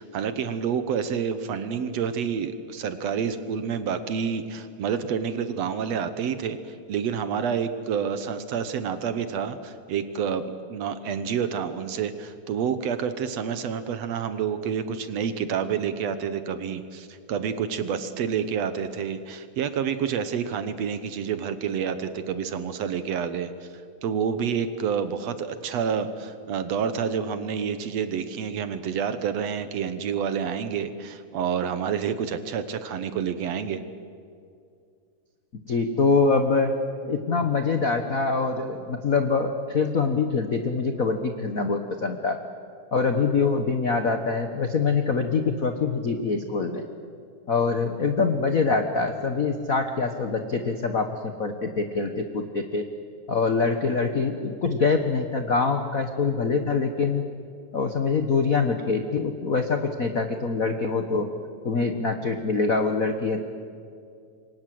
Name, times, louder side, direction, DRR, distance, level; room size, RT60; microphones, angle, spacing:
voice 1, 0.0-10.4 10.7-23.5 24.0-33.8, right 7 dB, 65° right, 11 dB, 2.0 m, -28 dB
voice 2, 35.7-36.7 37.0-42.4 42.9-46.8 47.5-52.8 53.3-57.2 57.7-61.3 61.6-63.4, left 4 dB, 70° left, 6 dB, 0.8 m, -24 dB
27.5 x 24.0 x 7.7 m, 2.4 s
omnidirectional pair, 3.5 m